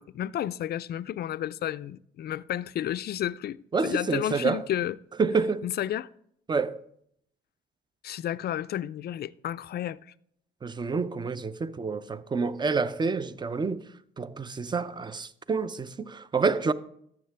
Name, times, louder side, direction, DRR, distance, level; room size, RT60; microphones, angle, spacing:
voice 1, 0.0-3.6 3.8-5.0 5.6-6.1 8.0-10.0, left 11 dB, 50° left, 0.4 m, -31 dB
voice 2, 3.7-4.6 5.2-5.6 6.5-6.8 10.6-13.9 14.2-16.7, right 4 dB, 20° right, 0.5 m, -28 dB
12.0 x 7.3 x 3.4 m
supercardioid pair, 75°, 21 cm